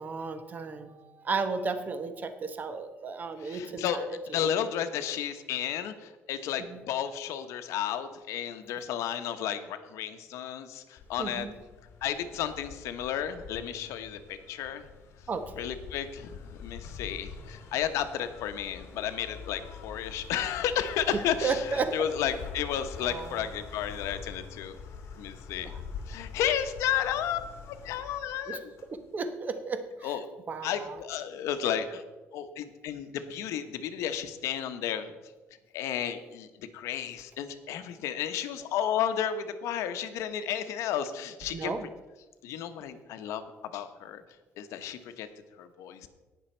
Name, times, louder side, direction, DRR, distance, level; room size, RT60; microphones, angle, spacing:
voice 1, 0.0-4.5 6.7-6.8 11.2-11.5 15.3-15.7 21.1-21.9 23.0-23.4 25.6-25.8 28.5-28.6 28.9-30.2 30.5-31.0 41.5-41.9, right 4 dB, 35° right, 9 dB, 1.0 m, -34 dB
voice 2, 3.4-11.5 12.0-14.9 15.6-24.8 25.2-25.7 26.1-28.7 30.0-30.3 30.6-32.0 32.3-35.1 35.7-41.7 42.4-43.4 43.7-44.2 44.6-45.3 45.6-46.1, left 9 dB, 85° left, 10 dB, 0.9 m, -33 dB
sound 1, 11.0-29.1, left 6 dB, 65° left, 2.0 m, -45 dB
18.0 x 6.3 x 4.4 m, 1.2 s
cardioid pair, 130°, 5 cm